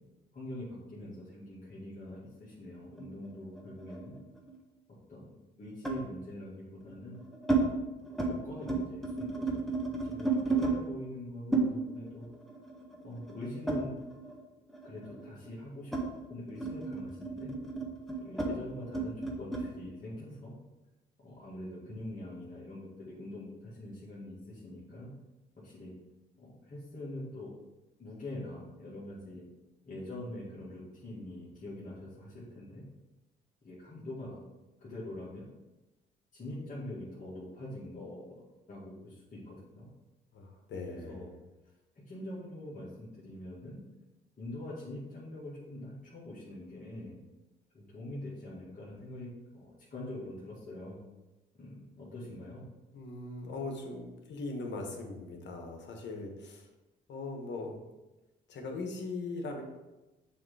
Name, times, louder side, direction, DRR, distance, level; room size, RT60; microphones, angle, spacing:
voice 1, 0.3-4.1 5.1-5.3 5.6-7.2 8.1-9.7 10.0-12.3 13.0-13.9 14.8-15.9 16.3-17.5 18.2-20.5 21.2-25.1 25.6-25.9 26.4-27.5 28.0-29.5 29.8-32.8 33.6-34.4 34.8-35.5 36.3-39.9 40.9-41.3 42.0-43.8 44.4-47.2 47.7-49.3 49.5-51.0 51.5-52.6, left 1 dB, 40° left, -8 dB, 2.1 m, -44 dB
sound 1, 3.0-4.6 5.8-6.1 6.8-7.6 8.0-8.3 8.6-10.8 11.5-14.4 14.7-19.7, right 3 dB, ahead, 1.3 m, -33 dB
voice 2, 40.3-41.3 52.9-56.7 57.1-57.8 58.5-59.6, left 3 dB, 65° left, 2 dB, 1.4 m, -40 dB
6.9 x 3.3 x 4.9 m, 1.1 s
supercardioid pair, 70°, 20 cm